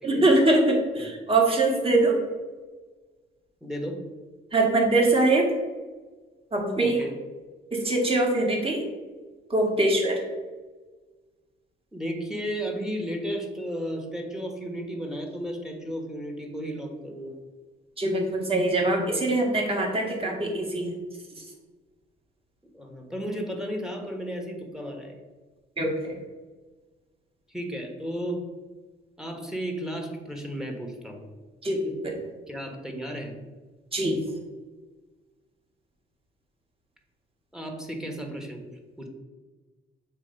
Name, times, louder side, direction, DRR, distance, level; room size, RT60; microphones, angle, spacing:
voice 1, 0.0-2.2 4.5-5.5 6.5-7.0 7.7-8.9 9.5-10.2 18.0-20.9 21.4-21.5 25.8-26.2 31.6-32.2 33.9-34.2, right 2 dB, 30° right, 0 dB, 1.7 m, -23 dB
voice 2, 3.6-4.0 6.8-7.1 11.9-17.4 22.7-25.2 27.5-28.4 29.2-31.3 32.5-33.3 37.5-38.6 39.0-39.1, equal, 5° right, 2 dB, 1.3 m, -34 dB
7.4 x 3.0 x 5.2 m, 1.3 s
cardioid pair, 90°, 20 cm